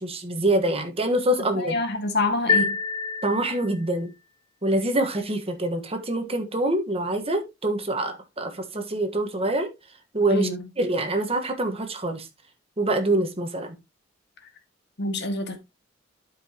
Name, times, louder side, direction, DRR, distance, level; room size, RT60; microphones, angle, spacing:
voice 1, 0.0-1.7 3.2-4.1 4.6-9.7 10.1-10.5 10.8-12.3 12.8-13.7, right 1 dB, 30° right, 1.3 m, -25 dB
voice 2, 1.5-2.8 10.3-10.6 15.0-15.6, left 2 dB, 60° left, 1.8 m, -26 dB
sound 1, 2.5-4.0, left 4 dB, 20° left, 0.6 m, -26 dB
12.0 x 5.0 x 2.9 m
head